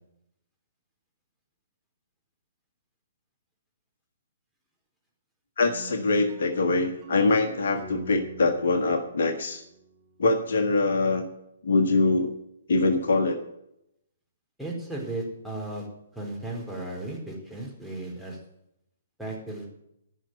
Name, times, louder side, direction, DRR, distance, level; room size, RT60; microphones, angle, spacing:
voice 1, 5.6-9.6 10.2-11.3 11.6-12.3 12.7-13.4, left 3 dB, 60° left, 5 dB, 1.5 m, -23 dB
sound 1, 5.6-10.5, right 4 dB, 30° right, 4.4 m, -45 dB
voice 2, 14.6-15.9 16.1-18.4 19.2-19.7, right 2 dB, ahead, -2 dB, 4.4 m, -35 dB
15.0 x 6.3 x 9.5 m, 0.80 s
figure-of-eight pair, 125°, 0 cm